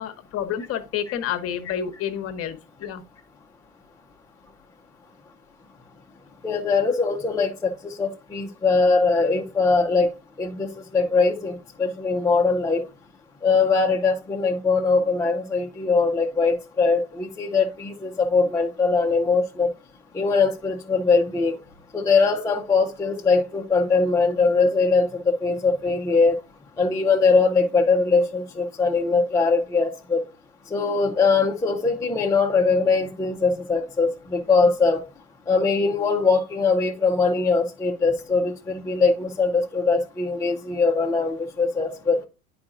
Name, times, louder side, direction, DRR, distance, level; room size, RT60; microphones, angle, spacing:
voice 1, 0.0-3.0, left 9 dB, 30° left, 1.0 m, -29 dB
voice 2, 6.4-12.8 13.4-19.7 20.1-21.6 21.9-26.4 26.8-30.2 30.7-35.0 35.5-42.2, left 4 dB, 10° left, 0.5 m, -21 dB
9.5 x 4.9 x 2.5 m
hypercardioid pair, 95°, 44 cm